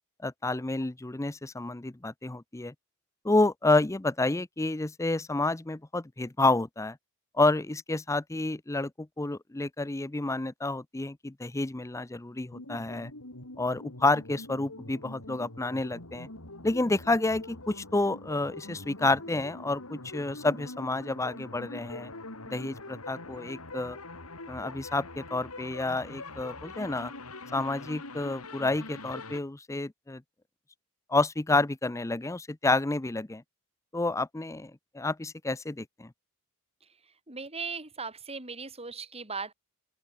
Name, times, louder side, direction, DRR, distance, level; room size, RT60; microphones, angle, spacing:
voice 1, 0.2-2.7 3.2-7.0 7.3-13.1 13.6-16.3 16.6-22.1 22.5-24.0 24.5-27.1 27.5-30.2 31.1-33.4 33.9-36.1, left 2 dB, 15° left, 0.6 m, -29 dB
sound 1, 12.5-29.4, left 2 dB, 75° left, 5.3 m, -44 dB
voice 2, 37.3-39.5, right 4 dB, 30° right, 6.2 m, -38 dB
open air
head